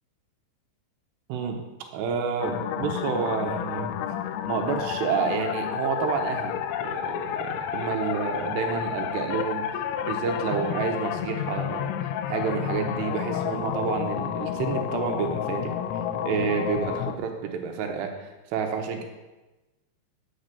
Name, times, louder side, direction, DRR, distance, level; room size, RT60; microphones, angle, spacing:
voice 1, 1.9-3.9 4.5-9.6 10.0-11.9 12.3-15.7 16.2-19.0, right 6 dB, 75° right, 3 dB, 2.8 m, -29 dB
sound 1, 2.4-17.2, left 9 dB, 80° left, 2.7 m, -30 dB
8.9 x 5.3 x 6.7 m, 1.1 s
omnidirectional pair, 5.5 m